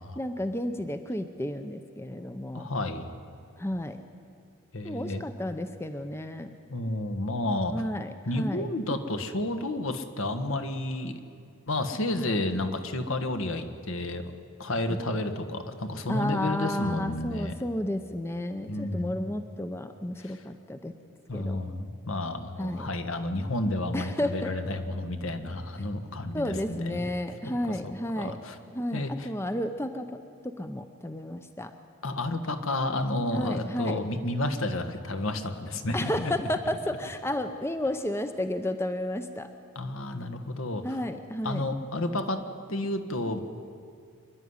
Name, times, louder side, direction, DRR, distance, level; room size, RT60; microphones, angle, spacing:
voice 1, 0.2-2.7 3.6-4.0 4.8-6.5 7.7-8.7 14.9-15.0 16.1-20.9 21.3-21.6 22.6-22.9 23.9-24.5 26.3-28.4 28.7-30.1 30.4-31.7 33.3-34.0 35.9-39.5 40.8-41.6, left 1 dB, 10° left, 8 dB, 0.6 m, -32 dB
voice 2, 2.5-3.1 4.7-5.2 6.7-7.8 8.2-11.2 11.7-14.3 14.6-17.5 18.7-19.2 20.2-20.4 21.3-27.1 27.4-28.6 28.9-29.3 32.0-36.3 39.7-41.0 41.4-42.4 42.7-43.4, left 1 dB, 70° left, 8 dB, 1.4 m, -31 dB
25.5 x 11.5 x 9.6 m, 2.4 s
head